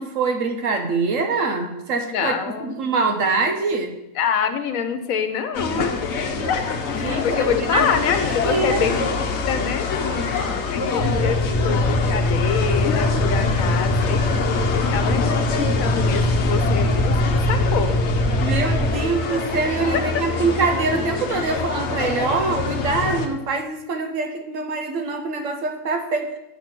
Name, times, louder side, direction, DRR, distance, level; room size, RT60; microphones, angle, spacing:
voice 1, 0.0-3.9 7.0-8.0 8.4-9.0 17.3-17.4 18.4-26.3, right 4 dB, 70° right, 5 dB, 1.2 m, -24 dB
voice 2, 2.1-2.7 4.2-18.0 19.9-20.0, left 7 dB, 80° left, 8 dB, 1.2 m, -26 dB
sound 1, 5.5-23.3, left 4 dB, 60° left, 1.0 m, -25 dB
sound 2, 11.0-18.9, left 1 dB, 10° right, 2.3 m, -22 dB
8.3 x 4.1 x 6.1 m, 0.86 s
omnidirectional pair, 1.5 m